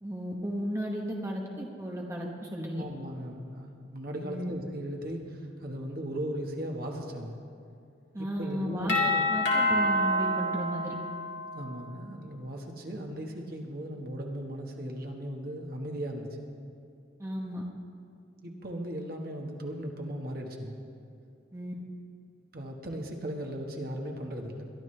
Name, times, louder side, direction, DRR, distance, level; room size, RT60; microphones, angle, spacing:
voice 1, 0.0-2.9 4.2-4.5 8.1-8.9 9.3-11.0 17.2-17.6 21.5-21.7, equal, 15° right, -1 dB, 1.0 m, -34 dB
voice 2, 2.8-7.4 8.2-9.3 11.5-16.3 18.4-20.8 22.5-24.7, equal, 50° right, 1 dB, 1.4 m, -37 dB
Doorbell, 8.9-11.7, left 1 dB, 65° left, 2.4 m, -27 dB
22.0 x 12.0 x 3.3 m, 2.5 s
head